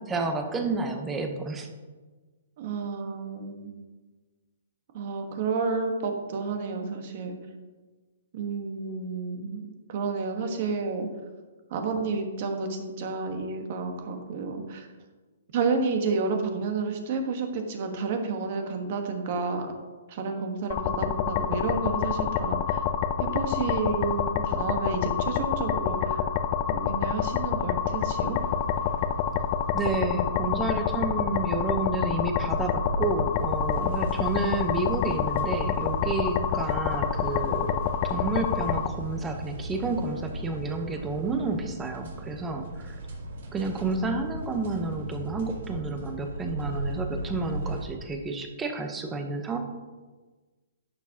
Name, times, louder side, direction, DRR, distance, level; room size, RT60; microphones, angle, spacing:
voice 1, 0.1-1.7 29.7-43.0 43.5-49.6, right 3 dB, 10° right, 5 dB, 0.8 m, -30 dB
voice 2, 2.6-3.7 4.9-7.4 8.3-11.1 11.7-14.9 15.5-19.7 20.1-22.8 23.2-26.3 26.7-28.4, right 4 dB, 45° right, 5 dB, 1.3 m, -30 dB
sound 1, 20.7-38.9, left 8 dB, 30° left, 0.5 m, -27 dB
sound 2, 28.3-47.9, right 1 dB, 60° right, 2.0 m, -37 dB
11.0 x 7.0 x 2.8 m, 1.3 s
hypercardioid pair, 155°, 0 cm